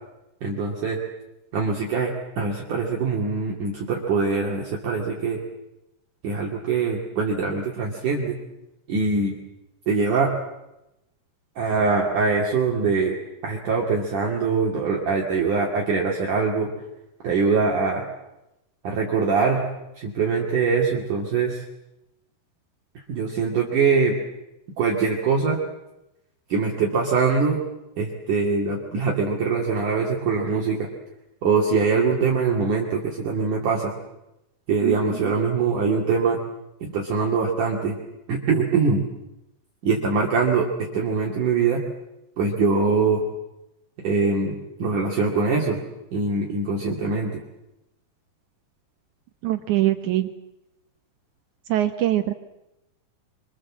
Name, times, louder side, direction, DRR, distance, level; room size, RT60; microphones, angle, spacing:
voice 1, 0.4-1.0 1.5-2.1 2.4-5.4 6.2-8.4 8.9-9.3 9.9-10.3 11.6-13.2 13.4-16.7 17.2-18.0 18.8-19.6 20.0-21.6 23.0-24.2 24.8-25.6 26.5-27.6 28.0-30.9 31.4-33.9 34.7-36.4 36.8-38.0 38.3-39.1 39.8-41.8 42.4-43.2 44.0-45.8 46.1-47.4, right 4 dB, 50° right, -2 dB, 3.6 m, -23 dB
voice 2, 49.4-50.3 51.7-52.3, right 14 dB, 90° right, 7 dB, 1.7 m, -23 dB
26.0 x 25.5 x 7.5 m, 0.92 s
omnidirectional pair, 5.1 m